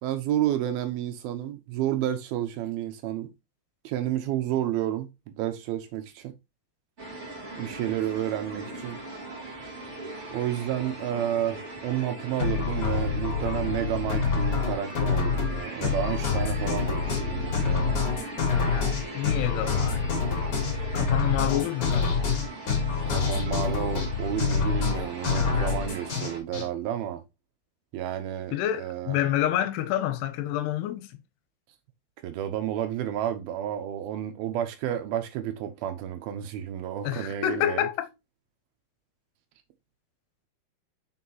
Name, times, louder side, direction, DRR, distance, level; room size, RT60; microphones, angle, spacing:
voice 1, 0.0-3.3 3.8-6.4 7.6-9.0 10.3-18.0 23.1-27.2 27.9-29.2 32.2-37.9, right 11 dB, 75° right, 2.5 m, -31 dB
sound 1, 7.0-26.4, right 2 dB, 40° right, 0.9 m, -39 dB
sound 2, 12.4-26.7, left 5 dB, 40° left, 2.4 m, -26 dB
voice 2, 19.1-20.1 20.9-22.1 28.5-31.1 37.0-38.1, left 12 dB, 85° left, 2.7 m, -28 dB
6.2 x 5.7 x 2.9 m
omnidirectional pair, 4.9 m